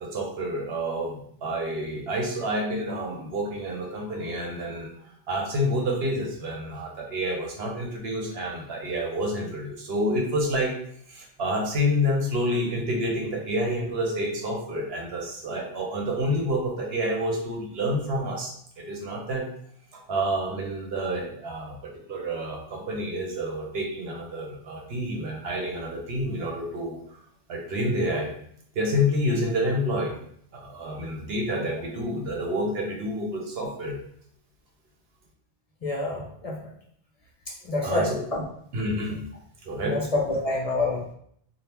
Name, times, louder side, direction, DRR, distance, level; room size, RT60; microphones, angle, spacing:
voice 1, 0.0-4.9 5.3-10.7 11.1-19.4 19.9-27.0 27.5-28.3 28.7-30.2 30.5-34.0 37.8-38.2 38.7-39.2 39.6-40.0, equal, 75° right, 0 dB, 1.0 m, -28 dB
voice 2, 35.8-36.7 37.6-38.4 39.8-41.1, left 2 dB, 45° left, -2 dB, 0.6 m, -27 dB
3.4 x 2.3 x 2.9 m, 0.66 s
omnidirectional pair, 1.0 m